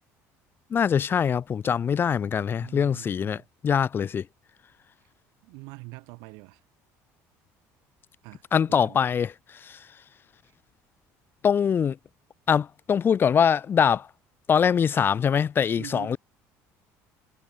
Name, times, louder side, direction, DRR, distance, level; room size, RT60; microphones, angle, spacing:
voice 1, 0.7-4.3 8.5-9.8 11.4-12.0 12.5-14.1 14.5-16.2, left 7 dB, 35° left, 0.7 m, -23 dB
voice 2, 2.6-3.5 5.4-6.6 8.2-9.0 15.8-16.2, right 30 dB, 85° right, 3.5 m, -44 dB
cardioid pair, 120°, 7 cm